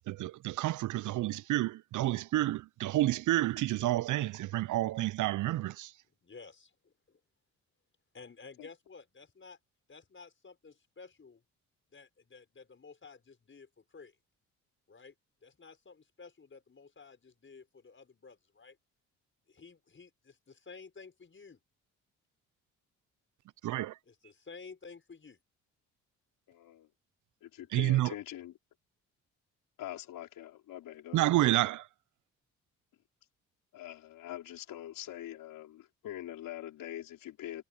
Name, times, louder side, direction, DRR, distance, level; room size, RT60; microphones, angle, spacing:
voice 1, 0.0-5.9 23.6-24.0 27.7-28.1 31.1-31.9, right 15 dB, 60° right, 0.5 m, -29 dB
voice 2, 6.2-7.2 8.1-9.6 9.9-11.4 11.9-14.2 14.9-15.1 15.4-18.8 19.5-21.6 24.1-25.4, left 4 dB, 35° left, 5.8 m, -53 dB
voice 3, 26.5-26.9 27.4-28.5 29.8-31.3 33.7-37.6, left 13 dB, 75° left, 4.6 m, -44 dB
supercardioid pair, 60°, 34 cm